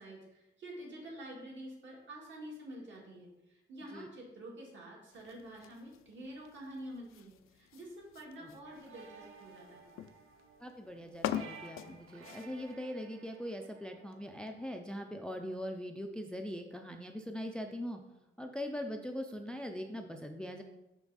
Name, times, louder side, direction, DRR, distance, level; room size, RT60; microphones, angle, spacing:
voice 1, 0.0-9.9, right 1 dB, 65° right, -2 dB, 2.1 m, -48 dB
sound 1, 5.1-12.7, left 10 dB, 90° left, 0.4 m, -45 dB
sound 2, 8.6-14.7, right 5 dB, 80° right, 0.7 m, -55 dB
voice 2, 10.6-18.0 18.4-20.6, equal, 5° left, 4 dB, 0.3 m, -41 dB
5.9 x 5.8 x 4.0 m, 0.95 s
wide cardioid pair, 175°, 21 cm